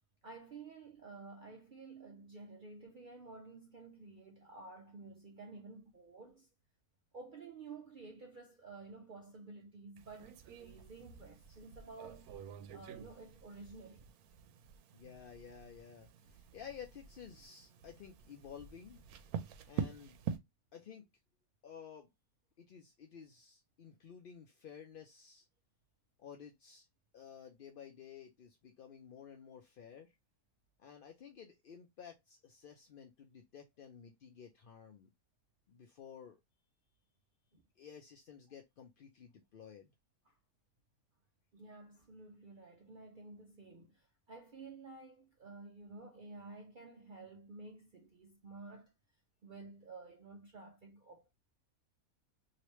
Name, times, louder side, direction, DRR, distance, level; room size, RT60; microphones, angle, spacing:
voice 1, 0.2-6.5 7.1-12.3 12.7-14.1 37.5-37.6 40.2-40.4 41.5-48.9 49.4-51.3, right 3 dB, 65° right, 0.5 m, -52 dB
sound 1, 10.0-20.4, right 7 dB, 80° right, 1.1 m, -46 dB
voice 2, 14.9-19.0 19.7-20.2 20.7-21.1 21.6-22.1 22.6-25.5 26.2-26.9 27.1-30.1 30.8-35.1 35.7-36.4 37.8-39.9, left 7 dB, 65° left, 0.5 m, -53 dB
3.1 x 2.9 x 2.9 m
omnidirectional pair, 1.5 m